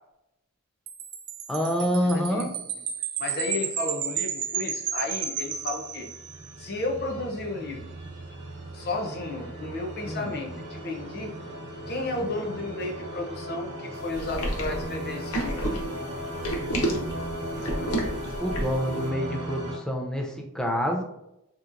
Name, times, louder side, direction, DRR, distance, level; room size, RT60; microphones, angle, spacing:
Wind chime, 0.9-6.5, right 8 dB, 90° right, 0.5 m, -32 dB
voice 1, 1.5-2.5 10.1-10.3 18.4-21.0, equal, 5° left, 1 dB, 0.4 m, -27 dB
voice 2, 2.0-2.6 3.2-6.1 6.6-7.9 8.7-11.3 11.9-15.7, left 2 dB, 45° left, 2 dB, 0.6 m, -33 dB
sound 1, 5.4-19.8, right 1 dB, 50° right, 0.7 m, -37 dB
sound 2, 14.1-18.9, right 1 dB, 90° left, 0.7 m, -30 dB
3.2 x 2.8 x 2.4 m, 0.85 s
head